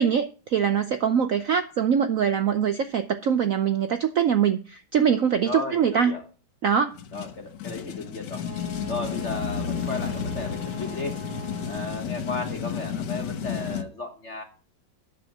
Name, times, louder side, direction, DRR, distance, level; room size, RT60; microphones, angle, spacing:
voice 1, 0.0-6.1 6.6-6.9, right 7 dB, 75° right, 0.7 m, -23 dB
voice 2, 5.4-6.2 7.1-8.4 8.9-11.1 11.7-14.4, left 3 dB, 40° left, 1.3 m, -34 dB
sound 1, 6.9-13.8, left 7 dB, 65° left, 1.5 m, -32 dB
Wind instrument woodwind instrument, 8.4-12.2, equal, 35° right, 2.0 m, -42 dB
9.9 x 6.9 x 7.1 m
omnidirectional pair, 2.2 m